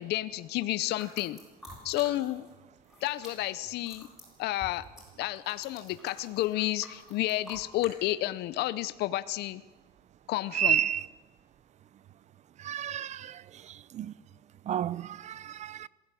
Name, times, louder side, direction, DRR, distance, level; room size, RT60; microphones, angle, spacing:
voice 1, 0.0-1.4 1.8-2.5 3.0-4.1 4.4-4.8 5.2-9.6 10.3-10.8, left 16 dB, 75° left, 0.7 m, -31 dB
sound 1, 0.9-2.5 2.8-7.9, left 1 dB, ahead, 7.9 m, -50 dB
voice 2, 10.5-11.1 12.6-13.3 13.9-14.1 14.7-15.9, right 10 dB, 40° right, 0.6 m, -30 dB
19.0 x 16.0 x 9.0 m
cardioid pair, 135°, 17 cm